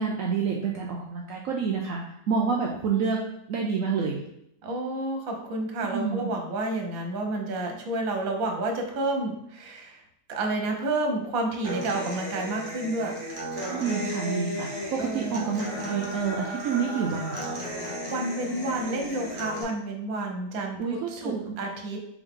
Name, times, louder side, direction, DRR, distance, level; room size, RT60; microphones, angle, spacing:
voice 1, 0.0-3.2 3.5-4.2 5.9-6.3 13.7-17.6 20.8-21.5, right 6 dB, 85° right, -1 dB, 0.7 m, -28 dB
voice 2, 4.6-10.0 10.3-13.2 15.0-15.4 18.1-22.0, right 2 dB, 60° right, 2 dB, 1.1 m, -30 dB
Human voice / Acoustic guitar, 11.6-19.6, equal, 30° right, 0.5 m, -34 dB
3.6 x 3.4 x 3.6 m, 0.76 s
omnidirectional pair, 1.9 m